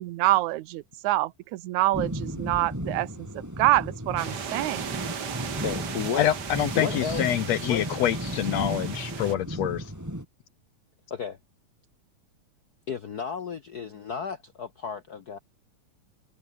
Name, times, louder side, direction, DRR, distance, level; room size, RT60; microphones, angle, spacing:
voice 1, 0.0-5.0, right 16 dB, 80° right, 2.2 m, -26 dB
sound 1, 1.9-10.3, equal, 5° right, 6.6 m, -35 dB
sound 2, 4.2-9.4, right 7 dB, 40° right, 1.8 m, -37 dB
voice 2, 5.6-6.3 6.7-7.3 7.6-7.8 11.1-11.4 12.9-15.4, left 7 dB, 90° left, 0.8 m, -33 dB
voice 3, 6.2-9.8, left 12 dB, 70° left, 2.0 m, -26 dB
omnidirectional pair, 3.3 m